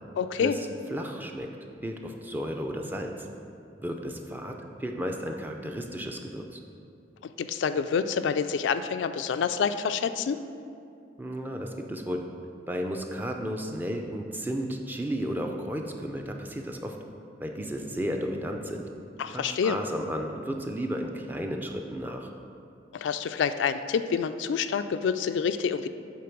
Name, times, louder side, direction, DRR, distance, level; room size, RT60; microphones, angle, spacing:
voice 1, 0.2-0.6 7.2-10.4 19.2-19.8 22.9-25.9, left 6 dB, 90° left, 10 dB, 0.3 m, -27 dB
voice 2, 0.9-1.5 1.8-3.3 3.8-6.6 11.2-12.2 12.7-17.0 17.4-18.9 19.3-22.3, equal, 10° right, 3 dB, 0.4 m, -33 dB
8.4 x 3.8 x 5.9 m, 2.6 s
head